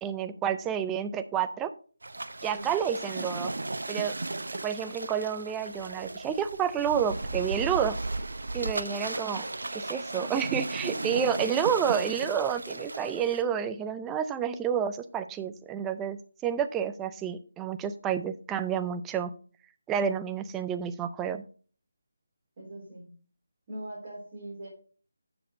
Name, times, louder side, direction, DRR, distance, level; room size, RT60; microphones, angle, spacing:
voice 1, 0.0-1.7 2.4-3.5 3.9-4.1 4.6-8.0 8.5-9.4 9.7-19.3 19.9-21.4, right 8 dB, 10° right, 10 dB, 0.4 m, -29 dB
sound 1, 2.0-13.4, right 2 dB, 75° right, 0.9 m, -35 dB
voice 2, 22.6-23.2 23.7-24.7, right 1 dB, 25° right, -9 dB, 3.9 m, -41 dB
7.3 x 6.9 x 5.1 m, 0.42 s
figure-of-eight pair, 170°, 0 cm